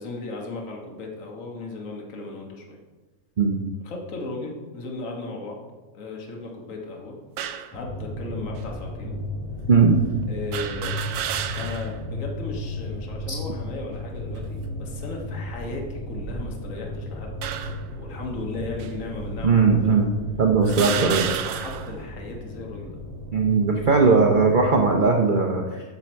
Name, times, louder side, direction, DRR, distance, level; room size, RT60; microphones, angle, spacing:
voice 1, 0.0-2.8 3.8-5.6 5.9-7.2 7.7-9.2 10.3-10.9 11.5-17.4 18.0-20.0 20.8-23.0 24.0-24.2, left 3 dB, 60° left, -1 dB, 1.7 m, -36 dB
sound 1, 7.4-7.8 8.6-8.7 10.5-12.0 12.4-12.5 13.6-14.1 14.8-15.0 16.0-16.8 17.4-17.9 18.8-18.9 19.8-19.9 20.6-22.0, right 9 dB, 85° right, 1.1 m, -31 dB
sound 2, 7.7-24.9, left 1 dB, 10° left, 2.4 m, -35 dB
voice 2, 19.4-20.1 20.4-21.3 23.3-25.8, right 4 dB, 45° right, 1 dB, 0.7 m, -19 dB
8.4 x 6.8 x 4.5 m, 1.3 s
omnidirectional pair, 1.6 m